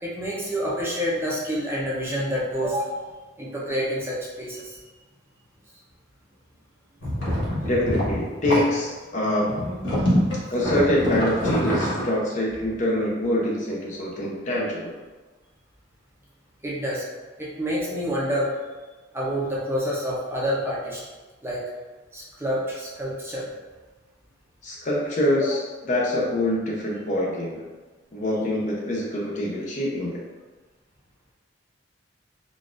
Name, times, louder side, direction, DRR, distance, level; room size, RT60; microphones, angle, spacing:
voice 1, 0.0-3.0 3.4-4.8 16.6-17.0 17.4-18.5 19.1-21.0 21.4-21.6 22.1-23.5 25.4-25.5, equal, 10° right, -6 dB, 0.6 m, -28 dB
sound 1, 7.0-8.7 9.5-12.1, equal, 75° left, 1.1 m, -25 dB
voice 2, 7.7-9.7 10.5-14.9 24.6-25.6 25.9-27.6 28.1-30.2, left 1 dB, 40° left, -3 dB, 0.6 m, -25 dB
3.8 x 2.4 x 2.4 m, 1.3 s
head